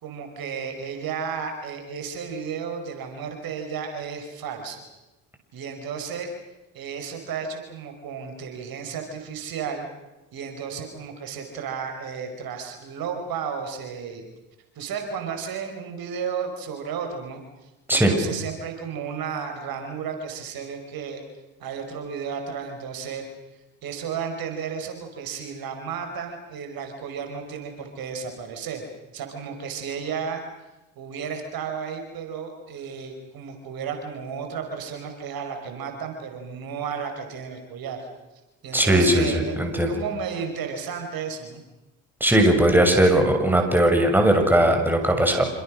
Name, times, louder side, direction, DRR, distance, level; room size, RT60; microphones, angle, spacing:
voice 1, 0.0-4.8 5.5-6.3 6.7-9.9 10.3-14.2 14.8-21.2 21.6-23.3 23.8-28.8 29.1-30.4 31.0-38.1 38.6-39.6 39.9-41.6, right 6 dB, 60° right, 5 dB, 5.5 m, -33 dB
voice 2, 38.7-39.9 42.2-45.4, right 1 dB, 5° right, 3 dB, 7.2 m, -19 dB
28.0 x 27.0 x 6.5 m, 1.0 s
supercardioid pair, 70°, 39 cm